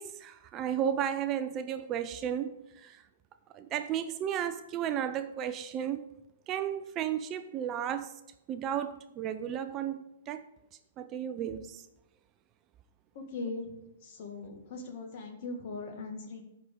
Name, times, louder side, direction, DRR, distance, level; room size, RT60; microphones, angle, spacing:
voice 1, 0.0-3.0 3.5-6.0 6.5-8.1 8.5-10.5 11.0-11.9, right 9 dB, 25° right, 10 dB, 0.4 m, -34 dB
voice 2, 13.1-16.4, left 3 dB, 50° left, 4 dB, 1.6 m, -40 dB
13.0 x 4.9 x 3.8 m, 0.88 s
hypercardioid pair, 155°, 0 cm